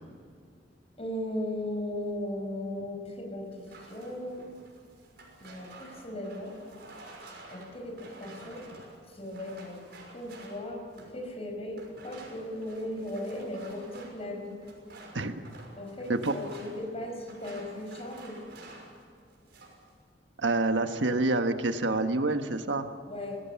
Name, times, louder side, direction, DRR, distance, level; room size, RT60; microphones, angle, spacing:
voice 1, 1.0-4.5 5.4-6.6 7.5-8.6 9.1-9.8 10.1-10.8 11.1-14.6 15.8-18.4 23.1-23.4, left 1 dB, 35° left, 2 dB, 5.6 m, -37 dB
sound 1, 3.5-11.2 11.7-19.0 19.3-19.9, right 2 dB, 65° right, 6.1 m, -51 dB
voice 2, 20.4-22.9, right 2 dB, 85° right, 7 dB, 1.4 m, -27 dB
26.0 x 18.5 x 7.0 m, 2.3 s
head